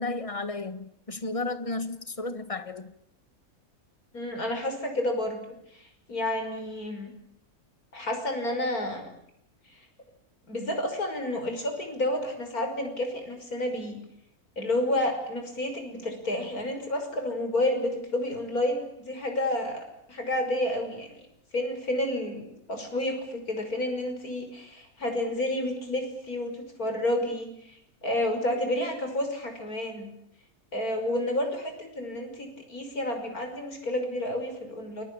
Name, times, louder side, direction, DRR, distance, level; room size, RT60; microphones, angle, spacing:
voice 1, 0.0-2.9, left 2 dB, 20° left, 11 dB, 1.5 m, -33 dB
voice 2, 4.1-5.4 5.7-7.1 7.9-9.1 10.5-14.0 14.6-21.2 21.5-30.1 30.7-35.0, left 1 dB, 65° left, 5 dB, 6.4 m, -30 dB
29.0 x 22.5 x 8.6 m, 0.73 s
omnidirectional pair, 1.6 m